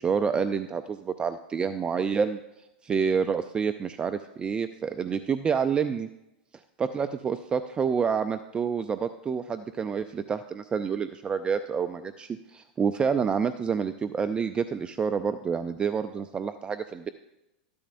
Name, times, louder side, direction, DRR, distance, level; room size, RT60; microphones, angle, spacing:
voice 1, 0.0-2.4 2.8-6.1 6.8-17.1, right 6 dB, 20° right, 11 dB, 0.4 m, -28 dB
14.0 x 12.0 x 2.6 m, 0.91 s
hypercardioid pair, 120°, 5 cm